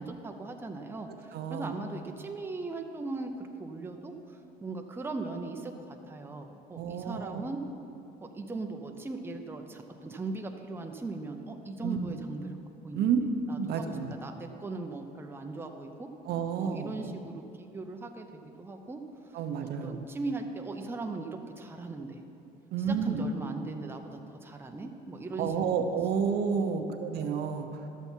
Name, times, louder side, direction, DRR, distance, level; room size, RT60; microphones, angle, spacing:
voice 1, 0.0-7.6 8.2-12.6 12.8-13.1 13.5-16.1 16.6-22.2 22.9-25.9 26.6-26.9, right 3 dB, 15° right, 3 dB, 0.7 m, -39 dB
voice 2, 1.3-1.7 6.7-7.4 11.8-12.2 12.9-13.2 13.5-14.1 16.3-17.0 19.3-20.1 22.7-23.3 25.4-27.7, right 6 dB, 70° right, 6 dB, 0.8 m, -30 dB
12.5 x 6.9 x 4.5 m, 2.9 s
cardioid pair, 110°, 17 cm